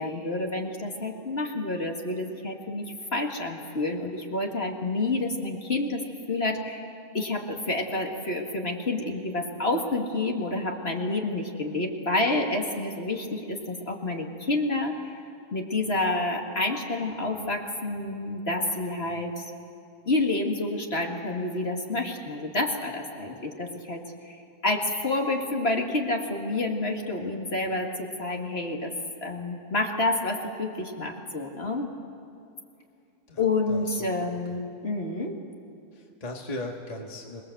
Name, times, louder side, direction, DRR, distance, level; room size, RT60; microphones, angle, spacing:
voice 1, 0.0-6.0 6.3-6.8 7.1-15.1 15.5-19.5 20.1-24.0 24.3-24.4 24.6-28.9 29.2-31.9 33.4-35.4, left 2 dB, 45° left, 1 dB, 2.3 m, -29 dB
voice 2, 33.3-34.1 35.9-37.4, left 2 dB, 25° left, 0 dB, 1.8 m, -38 dB
27.0 x 21.0 x 7.8 m, 2.6 s
omnidirectional pair, 1.5 m